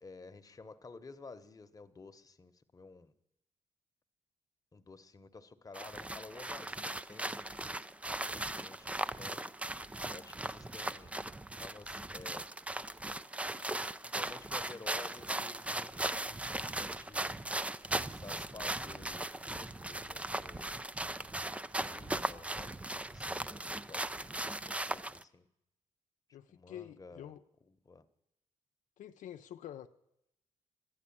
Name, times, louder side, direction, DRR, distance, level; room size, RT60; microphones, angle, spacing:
voice 1, 0.0-3.1 4.7-7.5 8.1-9.5 10.1-11.1 11.6-12.4 14.0-17.4 18.1-20.7 21.5-25.5 26.5-27.3 27.6-28.1, left 3 dB, 30° left, 1.0 m, -53 dB
sound 1, 5.7-25.2, right 1 dB, 10° right, 0.4 m, -38 dB
voice 2, 26.3-27.4 29.0-29.9, left 11 dB, 80° left, 0.5 m, -47 dB
12.0 x 10.5 x 8.6 m
cardioid pair, 85°, 13 cm